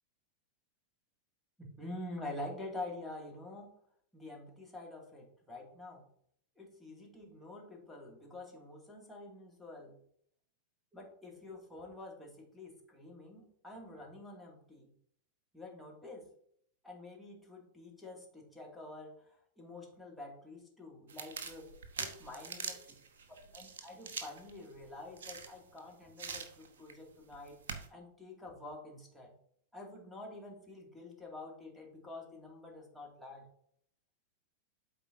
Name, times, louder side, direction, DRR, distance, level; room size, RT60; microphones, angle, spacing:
voice 1, 1.6-3.7 4.1-6.0 6.6-10.0 10.9-14.9 15.5-16.3 16.8-19.2 19.6-21.7 22.0-22.8 23.5-27.6 27.9-29.3 29.7-33.5, left 2 dB, 5° left, -2 dB, 2.2 m, -47 dB
sound 1, 21.1-25.8 26.2-26.9 27.3-27.9, right 5 dB, 60° right, 1.0 m, -44 dB
12.0 x 4.6 x 2.7 m, 0.66 s
figure-of-eight pair, 90°, 0 cm